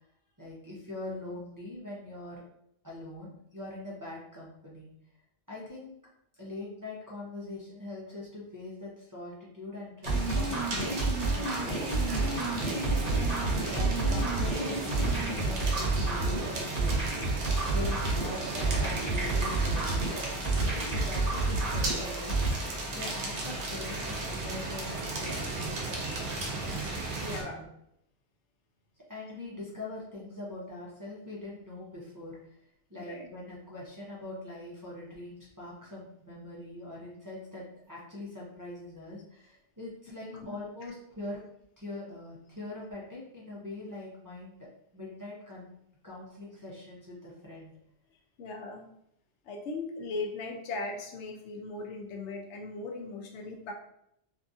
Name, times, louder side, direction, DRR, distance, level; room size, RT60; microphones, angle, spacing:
voice 1, 0.4-2.4 2.8-4.9 5.5-6.0 6.4-11.0 11.3-13.1 13.4-17.0 17.4-27.7 29.1-32.6 32.9-41.4 41.8-45.7 46.0-47.7, left 2 dB, 25° right, -7 dB, 0.5 m, -43 dB
sound 1, 10.0-27.4, right 2 dB, 65° right, 0.8 m, -35 dB
sound 2, 10.1-22.5, right 3 dB, 65° left, 1.3 m, -29 dB
voice 2, 27.2-27.7 32.9-33.3 40.3-40.5 48.4-48.8 49.5-53.7, left 3 dB, 85° left, 2 dB, 0.9 m, -38 dB
2.7 x 2.4 x 2.5 m, 0.74 s
omnidirectional pair, 1.1 m